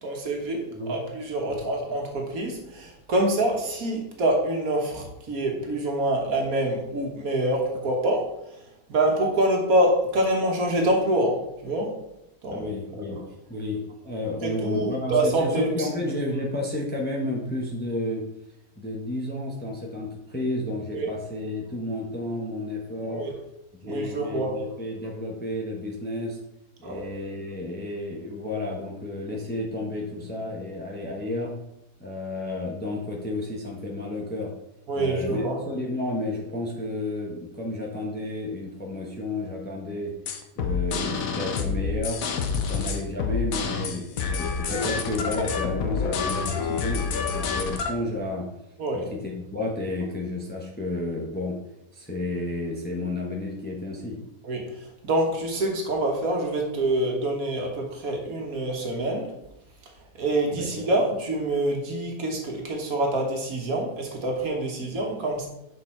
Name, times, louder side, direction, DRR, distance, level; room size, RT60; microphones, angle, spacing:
voice 1, 0.0-12.0 12.4-12.7 13.1-13.2 14.4-15.9 20.9-21.1 23.0-23.4 23.9-24.6 26.8-27.1 34.9-35.6 48.8-49.1 54.4-59.4 60.1-65.5, right 1 dB, 65° right, 1 dB, 1.6 m, -26 dB
voice 2, 12.5-13.2 13.5-18.2 18.8-23.3 23.7-26.4 26.8-31.5 32.0-34.5 34.9-40.1 40.6-42.2 42.6-48.5 48.9-51.6 51.9-54.2 60.5-60.9, left 2 dB, 10° left, -1 dB, 0.8 m, -31 dB
sound 1, 40.3-47.9, left 5 dB, 65° left, 1.1 m, -28 dB
6.3 x 4.8 x 4.4 m, 0.84 s
omnidirectional pair, 1.7 m